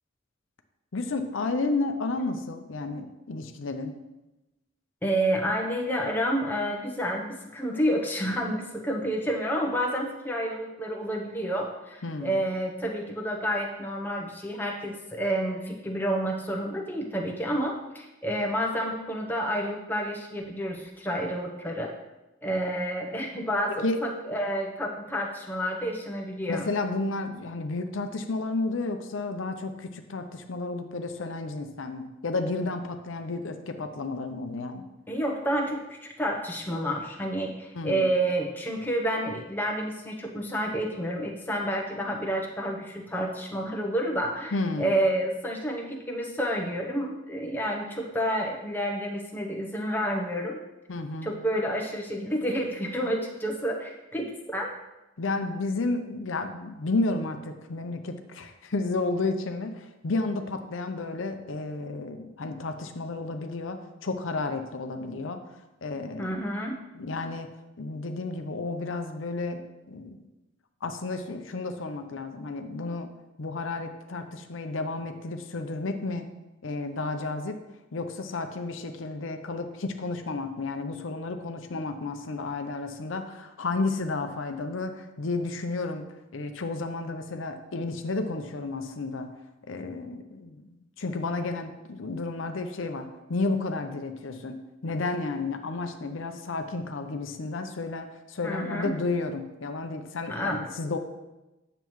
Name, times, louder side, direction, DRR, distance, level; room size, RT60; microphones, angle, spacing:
voice 1, 0.9-3.9 12.0-12.4 23.8-24.0 26.5-34.9 37.7-38.1 44.5-44.9 50.9-51.3 55.2-65.4 65.8-66.3 66.9-67.5 67.8-70.2 70.8-73.1 73.4-76.3 76.6-77.6 77.9-86.0 86.3-89.3 89.7-94.6 94.8-101.0, left 3 dB, 75° left, 6 dB, 0.6 m, -32 dB
voice 2, 5.0-21.9 22.4-26.7 35.1-50.6 51.2-54.7 66.2-66.8 98.4-98.9 100.3-100.7, equal, 10° left, 0 dB, 0.8 m, -29 dB
9.0 x 6.8 x 3.1 m, 1.0 s
head